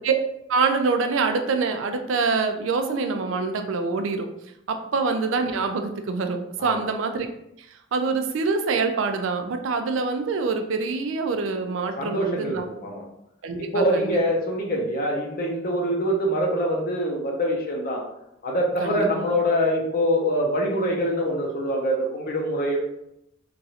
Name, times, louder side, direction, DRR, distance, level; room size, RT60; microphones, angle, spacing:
voice 1, 0.5-4.3 4.7-7.3 7.9-12.6 13.4-14.1 18.8-19.3, right 4 dB, 85° right, 6 dB, 0.4 m, -25 dB
voice 2, 6.6-6.9 12.0-13.0 13.6-18.0 18.4-22.8, equal, 50° left, -1 dB, 0.5 m, -24 dB
3.0 x 2.4 x 2.8 m, 0.80 s
head